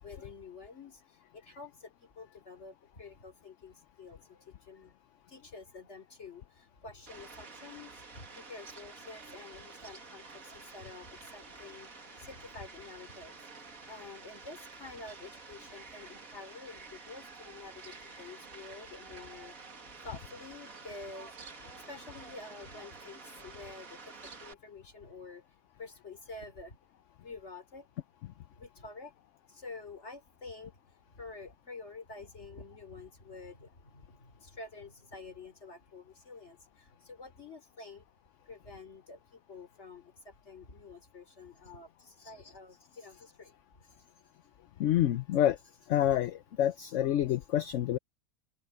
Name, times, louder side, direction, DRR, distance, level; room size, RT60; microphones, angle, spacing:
voice 1, 0.0-4.9 5.3-19.6 20.0-26.8 27.2-27.9 28.5-29.1 29.4-38.1 38.4-43.8, left 3 dB, 50° left, 3.6 m, -49 dB
Fowl, 7.1-24.5, right 4 dB, 65° right, 2.7 m, -50 dB
voice 2, 44.8-45.6 45.9-48.0, left 12 dB, 65° left, 0.9 m, -27 dB
open air
omnidirectional pair, 1.6 m